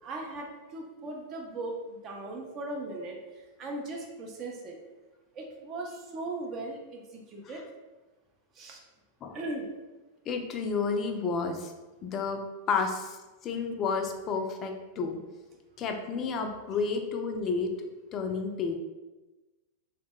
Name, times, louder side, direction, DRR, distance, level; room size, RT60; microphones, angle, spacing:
voice 1, 0.0-4.8 5.3-7.6 8.5-8.8 9.3-9.7, right 2 dB, 35° right, 0 dB, 0.4 m, -38 dB
voice 2, 10.3-11.7 12.0-12.4 12.7-13.2 13.4-15.2 15.8-17.7 18.1-18.8, left 5 dB, 30° left, 4 dB, 0.3 m, -31 dB
2.2 x 2.0 x 3.5 m, 1.1 s
figure-of-eight pair, 90°, 0 cm